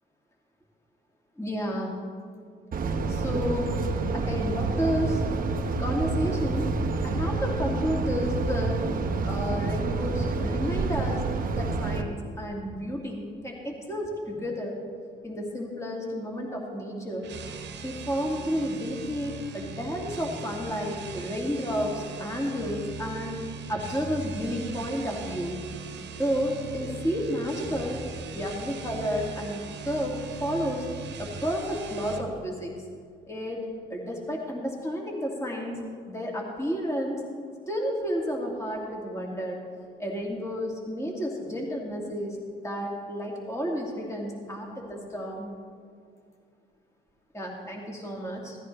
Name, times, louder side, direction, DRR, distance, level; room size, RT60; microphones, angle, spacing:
voice 1, 1.4-2.0 3.1-3.8 4.1-5.2 5.8-6.7 7.0-8.8 9.3-11.2 11.5-14.8 15.2-17.3 17.8-23.4 23.7-25.6 26.2-28.0 28.3-30.9 31.2-32.7 33.3-35.8 36.1-37.2 37.7-39.6 40.0-45.5 47.3-48.5, equal, 15° left, -1 dB, 2.2 m, -31 dB
sound 1, 2.7-12.0, right 3 dB, 45° right, 0.9 m, -28 dB
sound 2, 17.2-32.3, right 4 dB, 60° right, 1.3 m, -39 dB
16.0 x 13.5 x 3.2 m, 2.1 s
cardioid pair, 90°, 20 cm